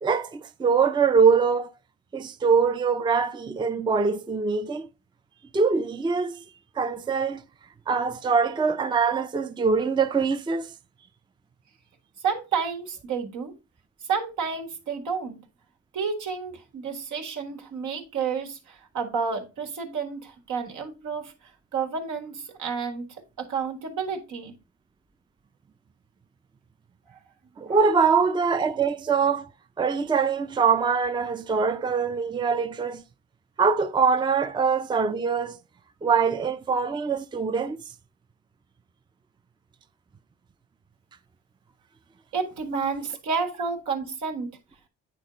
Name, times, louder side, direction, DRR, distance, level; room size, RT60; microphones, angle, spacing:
voice 1, 0.0-1.7 2.1-4.9 5.5-6.4 6.8-7.4 7.9-10.7 27.6-29.5 29.8-33.0 33.6-35.6 36.0-37.8, right 5 dB, 15° right, 0.4 m, -23 dB
voice 2, 12.2-13.5 14.0-15.4 15.9-24.6 27.1-27.2 27.7-27.8 42.3-44.6, right 5 dB, 80° right, 1.7 m, -30 dB
9.3 x 3.7 x 3.9 m
cardioid pair, 90°, 30 cm